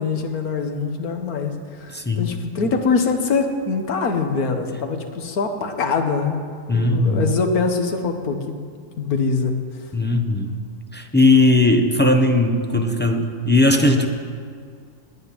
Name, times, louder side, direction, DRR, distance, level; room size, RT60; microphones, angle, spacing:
voice 1, 0.0-1.5 1.8-6.4 6.7-8.6 9.0-9.6, left 4 dB, 65° left, 5 dB, 1.7 m, -23 dB
voice 2, 1.9-2.3 6.7-7.2 9.9-10.5 10.9-14.1, left 2 dB, 10° left, 4 dB, 0.5 m, -18 dB
9.9 x 9.5 x 9.7 m, 2.1 s
omnidirectional pair, 1.7 m